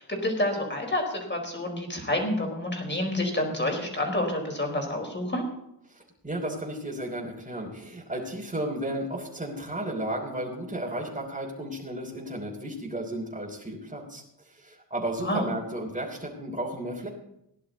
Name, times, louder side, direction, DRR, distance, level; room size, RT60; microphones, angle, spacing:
voice 1, 0.0-5.4 15.2-15.4, left 1 dB, 25° left, 2 dB, 4.6 m, -28 dB
voice 2, 5.9-17.1, right 1 dB, 20° right, -5 dB, 3.2 m, -33 dB
18.0 x 11.0 x 4.1 m, 0.80 s
wide cardioid pair, 105°, 42 cm